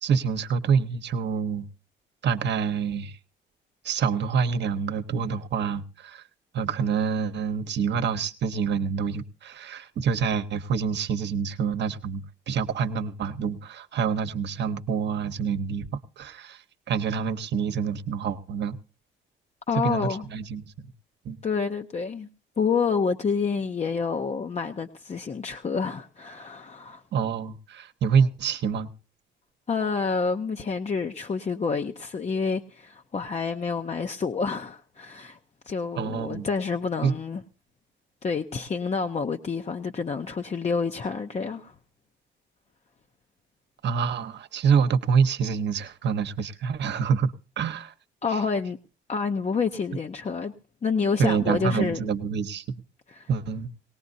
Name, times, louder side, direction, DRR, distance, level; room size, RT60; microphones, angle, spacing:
voice 1, 0.0-1.7 2.2-3.2 3.8-6.2 6.5-18.8 19.8-20.7 21.2-21.4 27.1-28.9 36.0-36.5 37.0-37.1 43.8-47.9 48.3-48.4 51.2-52.8 53.3-53.7, right 6 dB, 60° right, 1.0 m, -27 dB
voice 2, 19.7-20.3 21.4-22.3 22.6-27.0 29.7-35.4 35.7-37.4 38.2-41.7 48.2-48.8 49.1-50.5 50.8-52.1 53.1-53.3, left 5 dB, 35° left, 0.7 m, -28 dB
19.5 x 18.0 x 2.7 m
cardioid pair, 90°, 20 cm